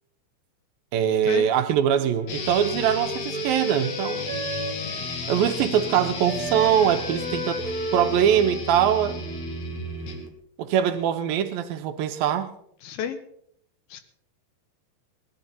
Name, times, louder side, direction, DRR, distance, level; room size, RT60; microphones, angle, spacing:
voice 1, 0.9-4.4 5.3-7.6 7.9-9.2 10.6-12.5, right 9 dB, 80° right, 8 dB, 2.5 m, -22 dB
Wind instrument woodwind instrument, 1.9-5.5 5.8-9.7, right 1 dB, 5° left, 0.9 m, -35 dB
sound 1, 2.3-10.3, left 3 dB, 50° left, 2.4 m, -33 dB
voice 2, 12.8-13.2 13.9-14.0, left 8 dB, 75° left, 9 dB, 2.9 m, -30 dB
19.5 x 12.0 x 4.2 m, 0.67 s
omnidirectional pair, 4.5 m